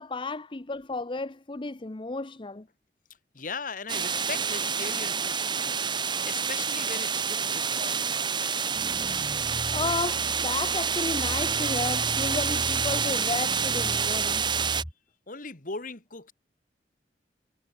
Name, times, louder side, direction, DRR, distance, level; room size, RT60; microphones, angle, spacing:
voice 1, 0.0-2.7 8.7-8.9 9.4-14.5, left 3 dB, 30° left, 0.7 m, -33 dB
voice 2, 3.3-5.8 6.2-8.2 15.3-16.3, left 4 dB, 50° left, 2.2 m, -39 dB
sound 1, 3.9-14.8, right 6 dB, 25° right, 1.7 m, -28 dB
sound 2, 8.7-14.9, equal, 10° right, 5.5 m, -38 dB
head